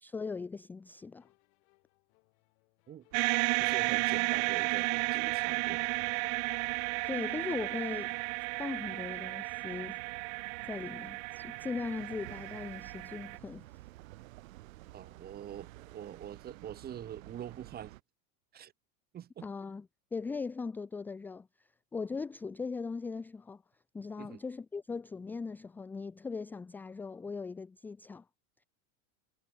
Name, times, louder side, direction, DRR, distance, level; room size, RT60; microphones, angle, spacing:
voice 1, 0.0-1.3 7.1-8.2 8.6-10.0 10.6-13.6 19.4-21.5 21.9-23.6 23.9-28.2, left 4 dB, 5° left, 0.4 m, -39 dB
sound 1, 0.8-9.5, left 33 dB, 55° left, 7.1 m, -72 dB
sound 2, 3.1-13.4, right 39 dB, 40° right, 0.6 m, -33 dB
sound 3, 3.1-18.0, right 18 dB, 80° right, 1.2 m, -53 dB
voice 2, 3.6-5.9 14.9-17.9 18.5-18.7 19.1-19.5 24.2-24.4, right 10 dB, 25° right, 2.5 m, -44 dB
supercardioid pair, 160°, 40 cm